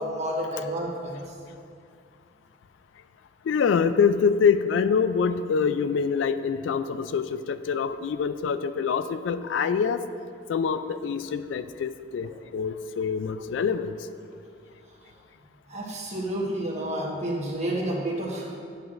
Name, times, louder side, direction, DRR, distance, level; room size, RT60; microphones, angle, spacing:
voice 1, 0.0-1.3 15.7-18.6, right 1 dB, 40° right, -3 dB, 1.3 m, -30 dB
voice 2, 3.5-10.0 10.5-14.0, left 6 dB, 70° left, 12 dB, 0.3 m, -25 dB
9.3 x 7.7 x 2.5 m, 2.3 s
head